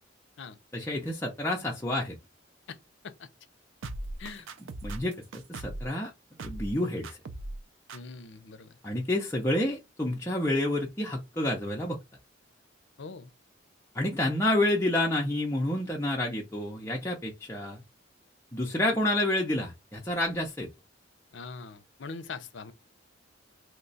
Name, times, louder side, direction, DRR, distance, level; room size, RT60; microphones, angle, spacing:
voice 1, 0.7-2.2 4.8-6.1 6.4-7.1 8.8-12.0 13.9-17.8 18.5-20.7, left 1 dB, 15° left, 0.5 m, -29 dB
sound 1, 3.8-5.9 6.4-6.8 7.0-7.6 7.9-8.0, right 2 dB, 80° right, 0.5 m, -38 dB
voice 2, 7.9-8.7 13.0-13.3 21.3-22.7, left 4 dB, 65° left, 0.5 m, -42 dB
3.0 x 2.3 x 3.9 m
head